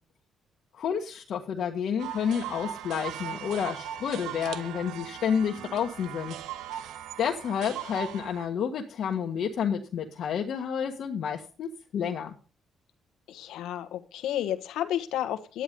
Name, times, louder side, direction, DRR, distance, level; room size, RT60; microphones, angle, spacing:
voice 1, 0.7-6.4 7.2-12.3, left 7 dB, 65° left, 1.4 m, -30 dB
sound 1, 2.0-8.5, right 10 dB, 85° right, 1.1 m, -39 dB
voice 2, 13.3-15.6, left 11 dB, 85° left, 1.3 m, -31 dB
12.0 x 10.0 x 5.3 m
cardioid pair, 90°, 0 cm